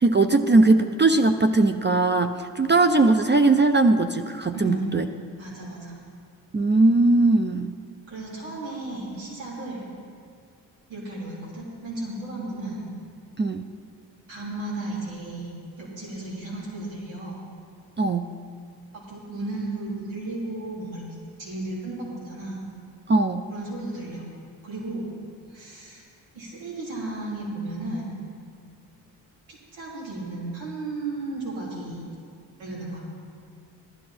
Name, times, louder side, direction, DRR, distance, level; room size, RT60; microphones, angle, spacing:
voice 1, 0.0-5.1 6.5-7.7 13.4-13.6 18.0-18.3 23.1-23.4, right 2 dB, 25° right, 8 dB, 0.5 m, -19 dB
voice 2, 4.5-5.0 5.4-5.9 8.1-9.9 10.9-12.9 14.3-17.4 18.9-21.0 21.4-22.6 23.5-24.3 24.6-25.1 25.5-26.0 26.3-28.1 29.5-32.0 32.6-33.0, right 2 dB, 80° right, -6 dB, 3.5 m, -34 dB
15.5 x 11.5 x 4.3 m, 2.2 s
hypercardioid pair, 45°, 46 cm